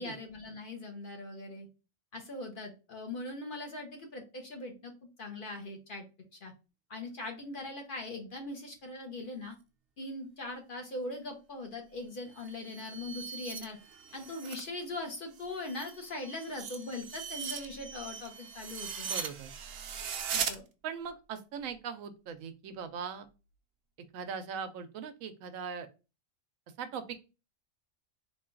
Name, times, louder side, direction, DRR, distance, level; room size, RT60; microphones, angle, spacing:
voice 1, 0.0-1.7 2.1-4.9 5.2-6.0 6.4-6.5 6.9-9.5 10.0-13.8 14.1-19.1 20.3-20.6, left 2 dB, 50° left, 3 dB, 0.8 m, -41 dB
sound 1, 12.3-14.7 15.0-20.5, right 7 dB, 60° right, 0.7 m, -40 dB
voice 2, 19.0-19.5 20.8-23.3 24.1-25.9 26.8-27.1, right 6 dB, 85° right, 9 dB, 1.0 m, -40 dB
3.7 x 2.3 x 3.7 m, 0.30 s
omnidirectional pair, 1.3 m